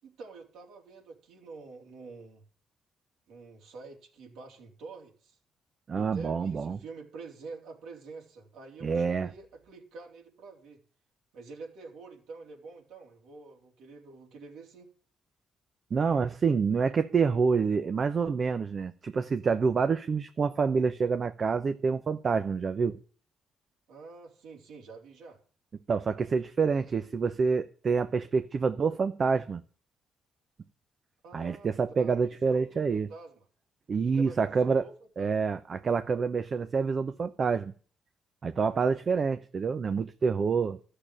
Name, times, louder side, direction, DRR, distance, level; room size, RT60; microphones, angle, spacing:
voice 1, 0.0-2.4 3.3-5.4 5.9-10.8 11.3-14.9 23.9-25.4 31.2-31.7 32.0-33.5 34.0-35.4, right 4 dB, 85° right, 3.7 m, -47 dB
voice 2, 5.9-6.8 8.8-9.3 15.9-23.0 25.9-29.6 31.3-33.1 33.9-34.8 35.2-37.7 38.4-40.8, right 5 dB, 45° right, 0.8 m, -27 dB
13.0 x 6.8 x 8.8 m
cardioid pair, 90°, 0 cm